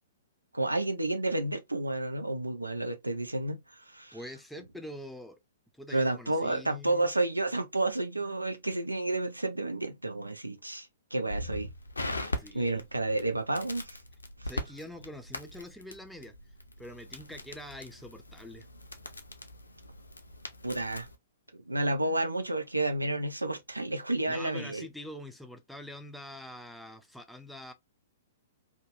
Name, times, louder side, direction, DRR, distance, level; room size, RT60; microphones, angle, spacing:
voice 1, 0.5-4.2 5.9-11.7 12.5-14.0 14.4-14.5 20.6-21.1 21.5-24.9, right 2 dB, 90° right, 0.5 m, -31 dB
voice 2, 4.1-5.4 5.7-7.1 12.4-12.9 14.4-16.3 16.8-18.7 24.3-27.7, left 1 dB, ahead, 0.4 m, -45 dB
Crackle, 11.3-21.2, left 1 dB, 85° left, 0.6 m, -41 dB
2.8 x 2.2 x 2.7 m
figure-of-eight pair, 115°, 0 cm